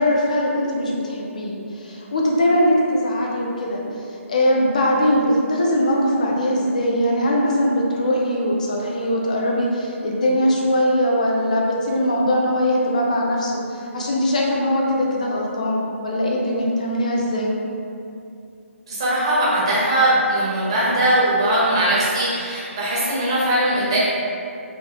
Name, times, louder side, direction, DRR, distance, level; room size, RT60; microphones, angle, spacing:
voice 1, 0.0-3.8 4.3-17.5, equal, 35° left, -2 dB, 0.3 m, -21 dB
voice 2, 18.9-24.1, right 1 dB, 20° right, -9 dB, 0.6 m, -20 dB
3.0 x 2.3 x 2.8 m, 2.5 s
hypercardioid pair, 180°, 7 cm